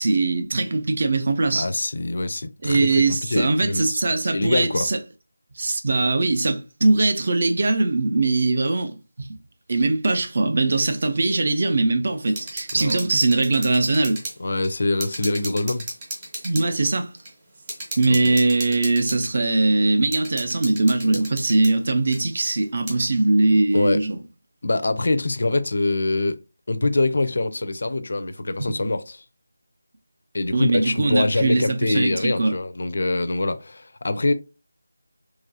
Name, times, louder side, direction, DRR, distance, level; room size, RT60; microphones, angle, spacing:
voice 1, 0.0-1.7 2.6-5.0 5.6-9.3 9.7-14.2 16.4-17.1 18.0-24.2 30.5-32.5, right 2 dB, 40° right, 0.5 m, -21 dB
voice 2, 1.6-4.9 12.7-13.0 14.4-15.9 18.1-18.4 23.7-24.0 24.6-26.4 26.7-29.2 30.3-34.3, left 2 dB, 50° left, 0.4 m, -24 dB
sound 1, 12.3-14.4 14.6-14.7 15.0-16.7 17.2-17.3 17.7-19.3 20.1-21.7 22.1-22.2 22.9-23.0, right 1 dB, 15° right, 0.8 m, -34 dB
2.9 x 2.4 x 2.6 m
figure-of-eight pair, 175°, 0 cm